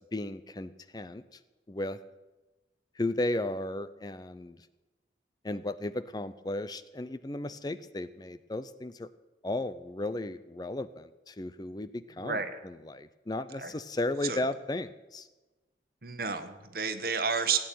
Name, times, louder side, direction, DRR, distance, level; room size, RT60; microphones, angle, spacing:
voice 1, 0.1-1.2 1.7-2.0 3.0-4.6 5.4-9.1 9.4-15.3, left 2 dB, 25° left, 14 dB, 0.5 m, -35 dB
voice 2, 12.2-12.6 13.6-13.7 14.2-14.4 16.0-17.6, right 5 dB, 55° right, 8 dB, 1.5 m, -31 dB
17.0 x 8.8 x 9.2 m, 1.1 s
head